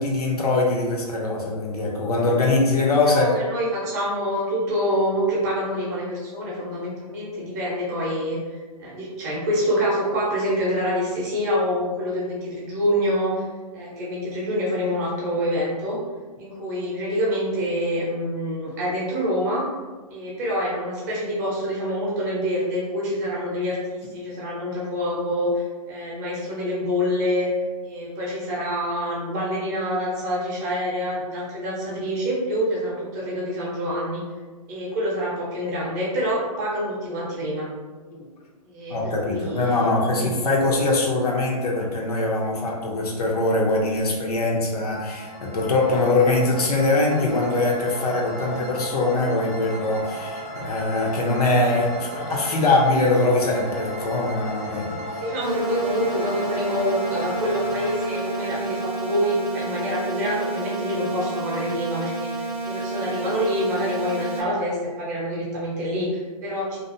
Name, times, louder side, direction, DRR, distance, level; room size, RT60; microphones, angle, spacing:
voice 1, 0.0-3.3 38.1-38.3 38.9-55.0, left 2 dB, 75° left, -1 dB, 0.7 m, -22 dB
voice 2, 3.0-13.5 13.7-16.0 16.4-19.7 20.1-34.2 34.7-37.7 38.6-40.3 55.2-66.8, equal, 25° right, -6 dB, 0.6 m, -26 dB
sound 1, 44.9-59.7, equal, 25° left, 0.5 m, -35 dB
sound 2, 55.4-64.4, right 3 dB, 85° right, 0.6 m, -30 dB
2.5 x 2.0 x 2.5 m, 1.4 s
hypercardioid pair, 160°, 19 cm